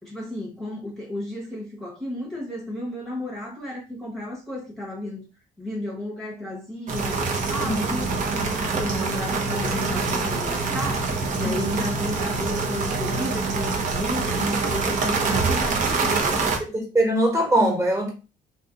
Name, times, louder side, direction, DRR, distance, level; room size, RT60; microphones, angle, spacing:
voice 1, 0.0-5.2 5.6-11.1 11.3-16.5, left 1 dB, 5° left, 1.0 m, -33 dB
sound 1, 6.9-16.6, right 4 dB, 50° right, 0.9 m, -25 dB
voice 2, 11.4-11.8 16.6-18.1, right 1 dB, 20° right, 1.4 m, -22 dB
2.7 x 2.6 x 3.6 m
cardioid pair, 110°, 17 cm